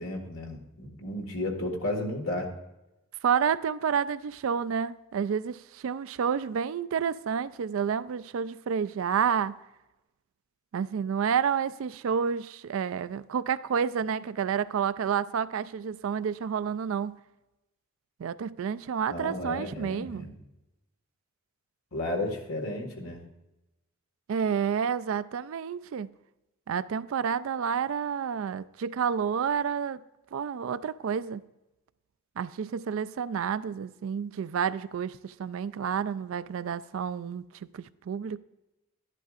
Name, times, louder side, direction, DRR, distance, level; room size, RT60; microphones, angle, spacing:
voice 1, 0.0-2.5 19.1-20.3 21.9-23.2, left 1 dB, 75° left, 1.8 m, -33 dB
voice 2, 3.2-9.6 10.7-17.2 18.2-20.3 24.3-26.1 26.7-30.0 30.3-31.4 32.4-37.4 37.7-38.4, right 7 dB, 65° right, 0.3 m, -29 dB
12.0 x 10.5 x 2.5 m
head